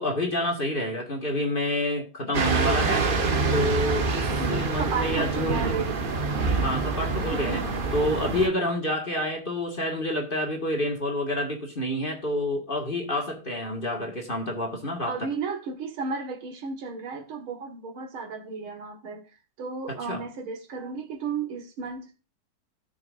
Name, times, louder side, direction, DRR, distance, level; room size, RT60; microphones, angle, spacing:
voice 1, 0.0-3.1 3.5-5.8 6.6-15.3 19.9-20.2, left 1 dB, 25° left, 1.8 m, -28 dB
sound 1, 2.3-8.5, right 4 dB, 40° right, 0.8 m, -26 dB
voice 2, 4.4-6.1 6.6-6.7 7.3-7.7 15.1-19.3 19.6-22.2, right 4 dB, 85° right, 2.5 m, -34 dB
16.5 x 6.2 x 2.5 m
omnidirectional pair, 2.2 m